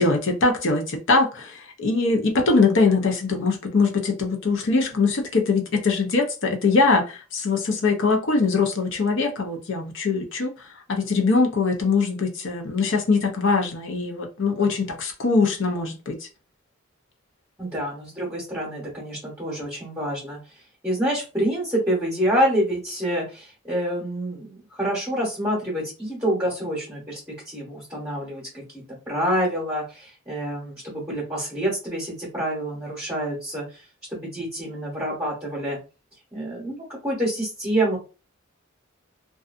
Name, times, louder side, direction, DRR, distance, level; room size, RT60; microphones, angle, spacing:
voice 1, 0.0-10.5 10.9-16.2, left 3 dB, 65° left, 0.6 m, -22 dB
voice 2, 17.6-20.4 20.8-28.6 29.1-35.8 36.3-38.0, right 1 dB, 10° right, 0.9 m, -27 dB
2.5 x 2.3 x 2.4 m
head